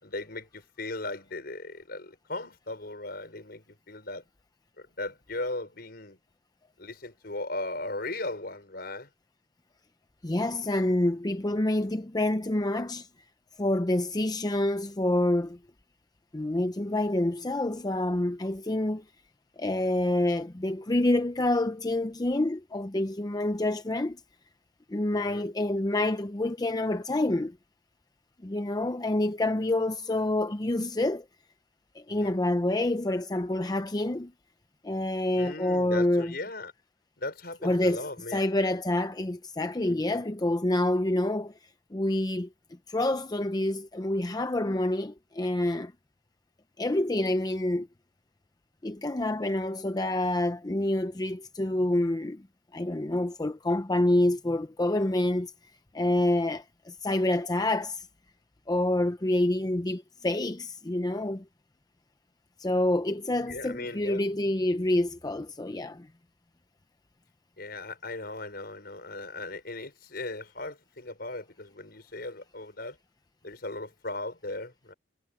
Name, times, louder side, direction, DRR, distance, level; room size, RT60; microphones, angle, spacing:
voice 1, 0.0-4.2 4.8-6.2 6.8-9.1 25.1-25.5 32.1-32.3 35.4-36.7 37.2-38.5 39.9-40.2 63.5-64.2 67.6-73.0 73.4-74.9, left 2 dB, 60° left, 5.4 m, -37 dB
voice 2, 10.2-13.1 13.6-15.6 16.3-19.0 19.6-24.2 24.9-27.6 28.4-31.2 31.9-34.3 34.8-36.3 37.6-41.5 41.9-42.5 42.9-45.9 46.8-47.9 48.8-52.4 52.7-55.5 55.9-58.1 58.7-61.4 62.6-66.1, left 1 dB, 20° left, 0.6 m, -27 dB
head